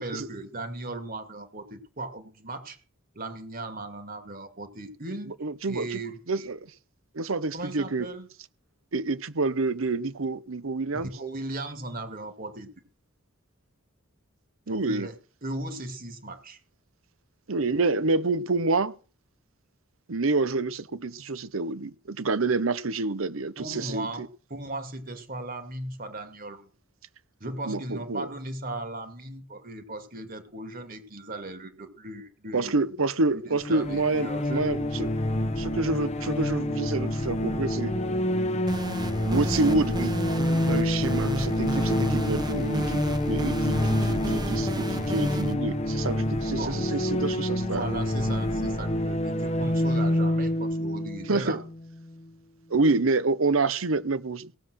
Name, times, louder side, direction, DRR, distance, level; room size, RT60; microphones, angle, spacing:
voice 1, 0.0-2.8 3.1-5.3 5.7-6.2 7.5-8.3 11.0-12.7 14.7-15.1 15.4-16.6 23.6-24.2 24.5-26.7 27.4-32.7 33.3-34.8 46.6-46.9 47.2-51.6, right 2 dB, 45° right, 2.4 m, -37 dB
voice 2, 5.3-6.0 6.3-6.6 7.1-8.1 8.9-11.1 14.7-15.1 17.5-19.0 20.1-24.3 27.6-28.3 32.5-35.1 35.6-38.0 39.2-40.1 40.7-47.9 51.3-51.6 52.7-54.6, right 3 dB, 85° right, 0.9 m, -28 dB
sound 1, 33.6-52.2, left 1 dB, 30° left, 1.2 m, -27 dB
sound 2, 38.7-45.5, right 1 dB, 20° right, 0.9 m, -33 dB
18.0 x 7.7 x 6.3 m
head